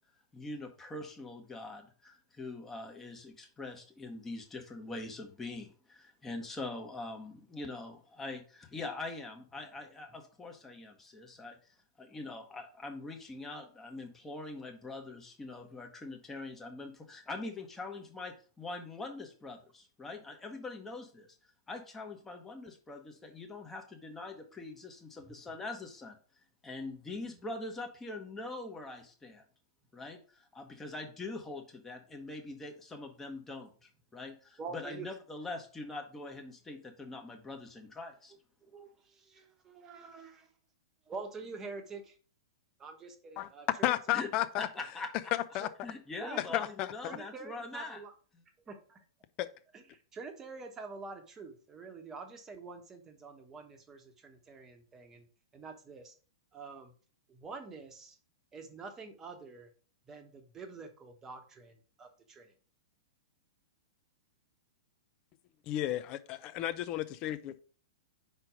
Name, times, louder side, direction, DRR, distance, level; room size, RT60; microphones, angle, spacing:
voice 1, 0.3-11.6 12.0-21.3 21.7-26.2 26.6-29.4 29.9-38.3 44.1-44.3 44.6-45.1 45.8-48.0 48.3-48.4, left 2 dB, 15° left, 1.2 m, -43 dB
voice 2, 34.6-35.1 38.6-40.5 41.1-42.2 42.8-44.0 44.2-44.4 45.6-45.7 46.2-46.6 47.1-48.1 48.7-49.0 49.7-55.3 55.5-56.1 56.5-56.9 57.3-58.2 58.5-59.7 60.1-62.5, right 4 dB, 20° right, 1.1 m, -46 dB
voice 3, 43.8-44.7 45.5-45.7 46.5-46.9 49.4-49.5 65.7-67.4, left 14 dB, 35° left, 0.5 m, -32 dB
5.0 x 4.5 x 5.0 m
figure-of-eight pair, 100°, 2 cm